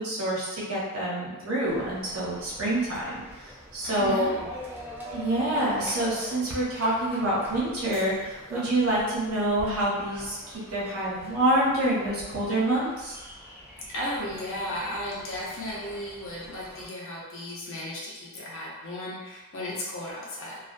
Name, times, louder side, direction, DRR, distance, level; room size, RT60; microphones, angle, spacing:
voice 1, 0.0-4.3 5.1-13.2, right 1 dB, 65° right, -7 dB, 0.9 m, -27 dB
sound 1, 1.7-16.9, equal, 10° right, 0.4 m, -44 dB
voice 2, 3.8-4.5 13.9-20.6, left 1 dB, 60° left, -6 dB, 0.7 m, -35 dB
2.4 x 2.1 x 2.5 m, 1.2 s
head